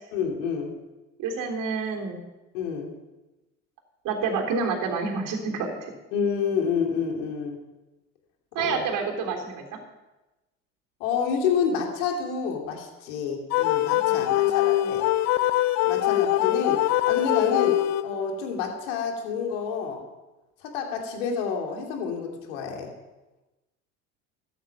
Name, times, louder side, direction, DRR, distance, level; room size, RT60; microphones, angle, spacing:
voice 1, 0.1-0.7 2.5-2.9 6.1-7.6 8.6-8.8 11.0-15.0 15.8-20.0 20.6-22.9, left 6 dB, 70° left, 2 dB, 2.8 m, -29 dB
voice 2, 1.2-2.2 4.0-5.9 8.5-9.6 13.9-14.9, right 5 dB, 55° right, 1 dB, 3.4 m, -29 dB
sound 1, 13.5-18.4, left 15 dB, 45° left, 0.6 m, -23 dB
13.5 x 10.0 x 5.8 m, 1.1 s
hypercardioid pair, 70°, 37 cm